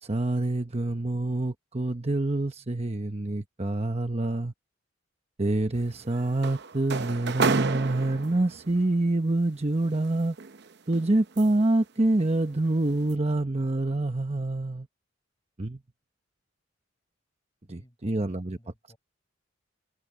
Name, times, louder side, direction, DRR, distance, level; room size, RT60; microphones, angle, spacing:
voice 1, 0.0-4.5 5.4-10.4 10.9-14.9 15.6-15.8 17.7-18.6, right 2 dB, 30° right, 0.9 m, -26 dB
sound 1, 5.7-8.7 9.8-11.8 12.2-12.5 12.9-13.1, right 4 dB, 60° right, 0.7 m, -31 dB
voice 2, 17.7-19.0, equal, 20° left, 7.1 m, -56 dB
head